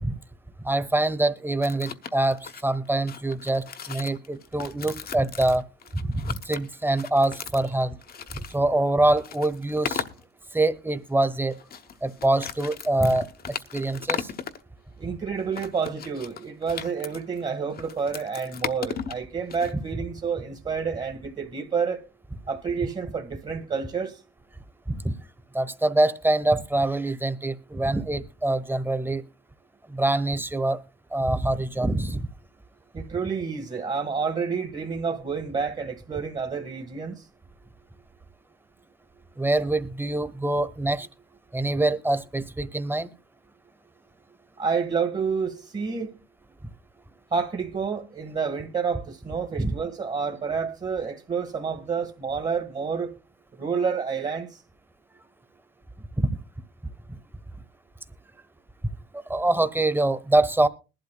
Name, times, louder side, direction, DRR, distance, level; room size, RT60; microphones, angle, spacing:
voice 1, 0.6-5.7 5.9-8.0 8.5-10.0 10.5-11.6 12.0-14.3 24.9-25.1 25.5-29.2 29.9-30.8 31.1-32.3 39.4-41.1 41.5-43.1 49.6-49.7 56.2-56.3 57.1-57.2 59.1-60.7, right 2 dB, 10° right, 1.1 m, -25 dB
sound 1, 1.6-8.6 9.1-10.2 11.5-14.6 15.5-19.7, left 7 dB, 50° left, 0.9 m, -36 dB
voice 2, 15.0-22.0 22.5-24.2 32.9-37.3 44.6-46.2 47.3-53.1 53.5-54.6, right 5 dB, 35° right, 1.6 m, -29 dB
21.0 x 12.0 x 2.2 m
cardioid pair, 90°, 20 cm